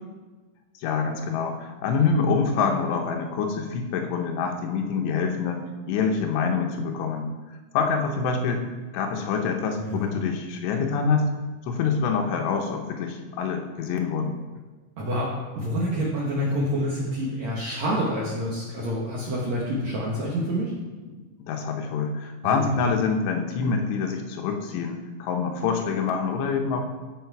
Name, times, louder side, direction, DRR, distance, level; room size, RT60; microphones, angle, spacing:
voice 1, 0.8-7.3 7.7-8.7 8.9-11.3 11.7-14.4 21.0-21.1 21.5-26.8, left 5 dB, 85° left, 3 dB, 3.0 m, -26 dB
voice 2, 9.8-10.1 15.0-15.3 15.6-20.7 22.4-22.6, equal, 65° right, -4 dB, 1.8 m, -27 dB
14.0 x 4.8 x 4.6 m, 1.3 s
omnidirectional pair, 4.9 m